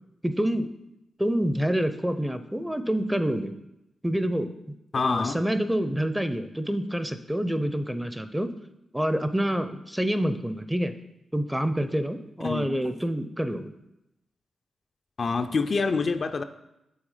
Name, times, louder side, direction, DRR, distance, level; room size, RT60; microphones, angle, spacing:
voice 1, 0.2-0.7 1.2-3.5 4.0-4.6 4.9-8.5 8.9-10.9 11.3-13.7, equal, 10° right, 10 dB, 0.5 m, -27 dB
voice 2, 4.9-5.4 12.4-12.7 15.2-16.4, left 4 dB, 55° left, 8 dB, 0.4 m, -26 dB
6.2 x 3.6 x 4.9 m, 0.88 s
supercardioid pair, 45°, 0 cm